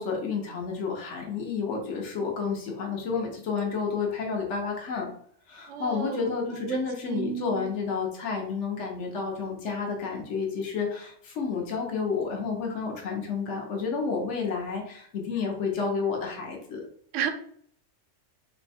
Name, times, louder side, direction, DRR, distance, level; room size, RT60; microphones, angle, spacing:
voice 1, 0.0-5.1 5.5-16.8, left 5 dB, 70° left, 0 dB, 1.2 m, -30 dB
voice 2, 5.7-7.7 17.1-17.3, right 8 dB, 80° right, 9 dB, 0.9 m, -32 dB
4.2 x 2.3 x 4.2 m, 0.62 s
omnidirectional pair, 1.3 m